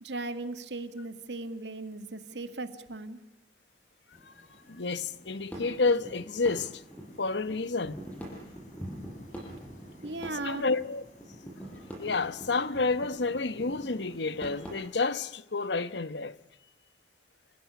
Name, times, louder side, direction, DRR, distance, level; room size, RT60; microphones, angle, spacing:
voice 1, 0.0-3.2 10.0-10.7, right 2 dB, 85° right, 2.1 m, -37 dB
sound 1, 4.1-15.1, left 1 dB, 45° left, 6.1 m, -57 dB
voice 2, 4.7-6.8 7.2-8.0 10.3-11.0 12.0-16.4, left 3 dB, 85° left, 1.1 m, -30 dB
sound 2, 5.2-14.8, right 1 dB, 10° left, 7.2 m, -45 dB
29.0 x 16.0 x 9.7 m
head